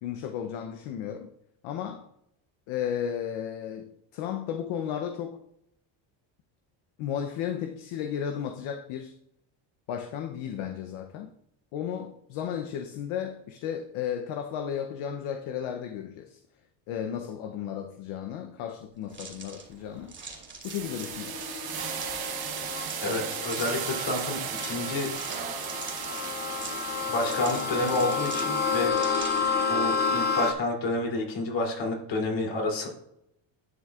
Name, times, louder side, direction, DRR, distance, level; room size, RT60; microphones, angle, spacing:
voice 1, 0.0-1.3 1.6-2.1 2.7-5.4 7.0-9.1 9.9-11.3 11.7-16.4 16.9-20.1 20.6-21.4, left 9 dB, 75° left, 0.8 m, -34 dB
sound 1, 19.1-29.6, right 4 dB, 25° right, 2.5 m, -44 dB
sound 2, 19.1-19.5 19.9-28.9, right 9 dB, 50° right, 1.0 m, -36 dB
sound 3, 20.8-30.5, left 5 dB, 20° left, 0.6 m, -31 dB
voice 2, 23.0-25.1 27.1-28.9 29.7-32.9, left 2 dB, 60° left, 3.1 m, -29 dB
11.0 x 6.4 x 2.4 m
cardioid pair, 105°, 49 cm